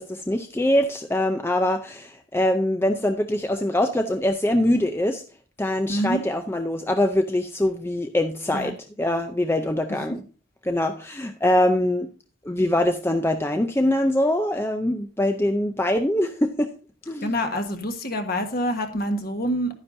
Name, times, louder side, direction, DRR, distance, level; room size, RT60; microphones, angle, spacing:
voice 1, 0.0-5.2 5.6-10.2 10.6-12.1 12.4-16.7 17.1-17.4, left 1 dB, 10° left, 6 dB, 0.5 m, -23 dB
voice 2, 5.9-6.2 8.5-8.7 17.2-19.7, equal, 45° left, 6 dB, 1.4 m, -26 dB
11.5 x 9.8 x 2.7 m, 0.37 s
head